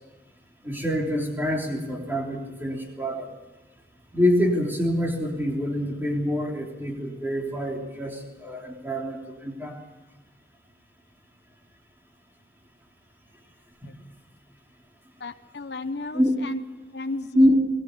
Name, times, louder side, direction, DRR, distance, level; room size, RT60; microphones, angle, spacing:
voice 1, 0.6-3.3 4.1-9.8 13.8-14.0 16.1-16.3 17.3-17.6, equal, 10° right, 0 dB, 3.4 m, -25 dB
voice 2, 15.2-16.6 16.9-17.6, left 3 dB, 70° left, 7 dB, 0.9 m, -34 dB
21.0 x 20.0 x 6.9 m, 1.2 s
head